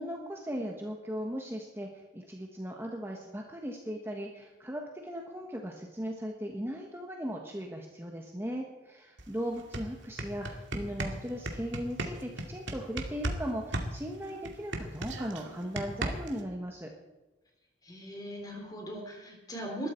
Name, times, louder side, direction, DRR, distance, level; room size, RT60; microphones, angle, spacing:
voice 1, 0.0-16.9, equal, 10° right, 1 dB, 1.3 m, -38 dB
sound 1, 9.2-9.3 9.6-13.4 13.7-16.4, right 1 dB, 75° right, 2.2 m, -35 dB
voice 2, 17.8-19.9, equal, 20° left, 2 dB, 3.5 m, -39 dB
21.0 x 13.0 x 4.5 m, 1.1 s
head